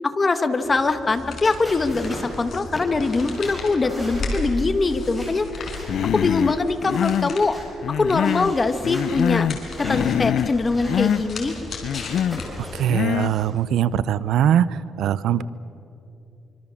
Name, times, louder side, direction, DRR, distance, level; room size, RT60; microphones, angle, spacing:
voice 1, 0.0-5.7 6.1-7.6 7.9-9.5 9.8-11.5, left 3 dB, 25° left, 9 dB, 1.4 m, -22 dB
sound 1, 0.6-13.5, left 1 dB, ahead, 7.9 m, -38 dB
sound 2, 1.0-12.9, left 2 dB, 45° left, 5.0 m, -36 dB
Human voice, 5.9-6.6 6.9-7.3 7.8-8.6 8.8-9.6 9.8-10.6 10.9-11.2 11.8-12.4 12.9-13.4, left 9 dB, 65° left, 0.5 m, -24 dB
voice 2, 12.7-14.7 15.0-15.4, right 10 dB, 85° right, 17 dB, 0.7 m, -21 dB
25.5 x 24.5 x 7.2 m, 2.8 s
cardioid pair, 135°, 0 cm